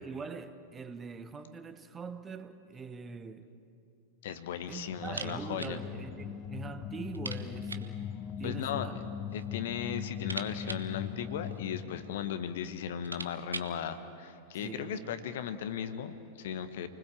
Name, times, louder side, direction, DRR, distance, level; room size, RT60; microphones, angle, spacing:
voice 1, 0.0-3.5 4.7-8.1 8.4-9.0 14.6-15.2, right 5 dB, 20° right, 1.1 m, -43 dB
voice 2, 4.2-5.8 8.4-9.0 9.3-16.9, left 8 dB, 55° left, 1.2 m, -37 dB
sound 1, 4.9-12.3, left 8 dB, 30° left, 1.1 m, -40 dB
sound 2, 5.0-5.8 6.1-6.2 6.5-6.6 7.1-8.0 8.9-9.5 9.8-11.8 12.5-12.6 12.9-13.8, right 3 dB, 80° right, 1.0 m, -43 dB
28.5 x 20.0 x 7.2 m
figure-of-eight pair, 90°, 0 cm